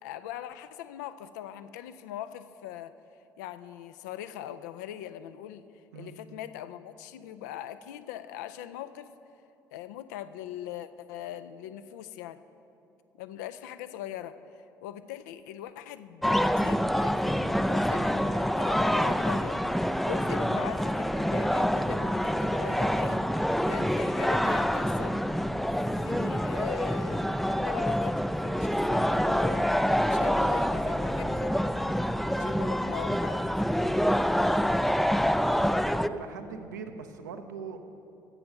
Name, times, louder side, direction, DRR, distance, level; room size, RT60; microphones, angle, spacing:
voice 1, 0.0-2.9 3.4-5.7 6.0-9.1 9.7-12.4 13.2-14.3 14.8-19.6 20.1-25.2 26.0-29.7 30.0-31.8 32.4-33.4, left 11 dB, 70° left, 12 dB, 0.4 m, -41 dB
sound 1, 16.2-36.1, equal, ahead, 0.3 m, -26 dB
voice 2, 32.4-32.8 35.8-37.8, right 5 dB, 75° right, 6 dB, 0.6 m, -42 dB
10.5 x 7.8 x 6.5 m, 2.7 s
figure-of-eight pair, 50°, 10 cm